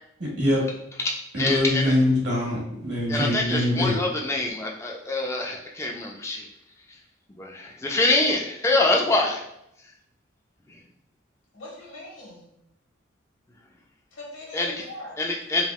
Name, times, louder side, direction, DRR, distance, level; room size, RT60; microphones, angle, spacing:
voice 1, 0.2-0.6 1.3-4.0, left 1 dB, 55° right, -4 dB, 1.1 m, -23 dB
voice 2, 1.0-1.9 3.1-6.4 7.4-9.4 14.5-14.7 15.2-15.6, left 2 dB, 15° left, 0 dB, 0.3 m, -25 dB
voice 3, 11.5-12.5 14.1-15.2, left 1 dB, 80° left, -3 dB, 1.0 m, -41 dB
3.4 x 2.2 x 2.3 m, 0.79 s
head